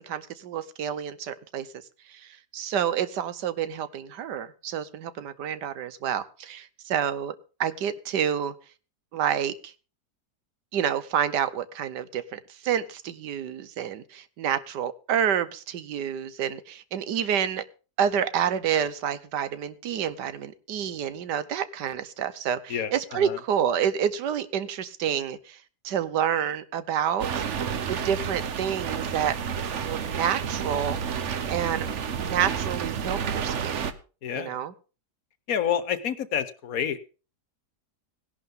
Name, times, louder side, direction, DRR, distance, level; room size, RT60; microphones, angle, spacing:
voice 1, 0.0-1.8 2.1-7.3 7.6-8.5 9.1-9.7 10.7-17.6 18.0-25.6 25.8-27.4 27.9-29.4 29.8-31.0 31.5-33.8 34.3-34.7, right 9 dB, 85° right, 1.5 m, -28 dB
voice 2, 22.7-23.4 34.2-34.6 35.5-37.0, left 8 dB, 60° left, 1.3 m, -29 dB
sound 1, 27.2-33.9, right 7 dB, 50° right, 1.1 m, -30 dB
17.0 x 11.5 x 3.7 m
omnidirectional pair, 1.8 m